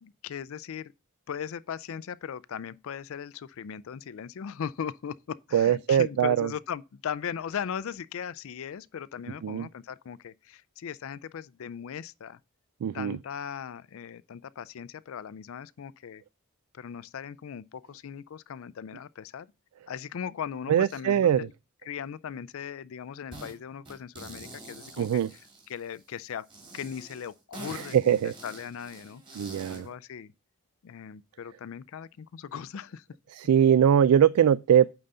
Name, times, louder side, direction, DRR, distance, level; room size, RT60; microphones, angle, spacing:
voice 1, 0.0-0.9 1.3-12.4 12.9-16.2 16.7-19.5 19.9-21.5 21.9-25.4 25.7-26.5 26.7-28.2 28.4-29.2 29.7-30.3 30.8-33.0, left 8 dB, 65° left, 0.4 m, -38 dB
voice 2, 5.5-6.5 9.4-9.7 12.8-13.2 20.7-21.4 25.0-25.3 27.7-28.3 29.4-29.9 33.3-34.9, right 9 dB, 90° right, 0.3 m, -22 dB
sound 1, 23.3-23.6 23.9-26.0 26.5-29.9, right 2 dB, 20° right, 2.9 m, -46 dB
8.8 x 3.9 x 5.4 m
head